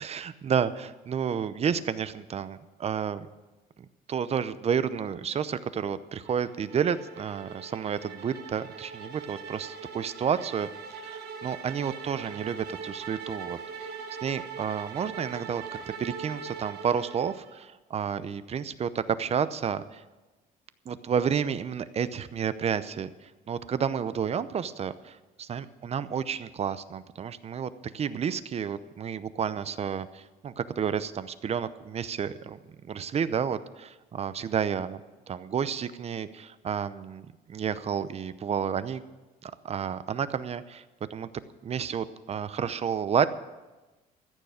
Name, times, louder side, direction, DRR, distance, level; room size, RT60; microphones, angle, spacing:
voice 1, 0.0-3.3 4.1-13.9 14.2-15.6 16.0-20.0 20.9-23.1 23.5-32.6 32.8-35.0 35.3-39.0 39.4-40.8 41.1-41.3 41.6-43.3, right 7 dB, 40° right, 14 dB, 0.7 m, -31 dB
sound 1, 6.3-17.6, right 6 dB, 75° right, 1.4 m, -41 dB
14.5 x 6.9 x 9.0 m, 1.2 s
cardioid pair, 110°, 17 cm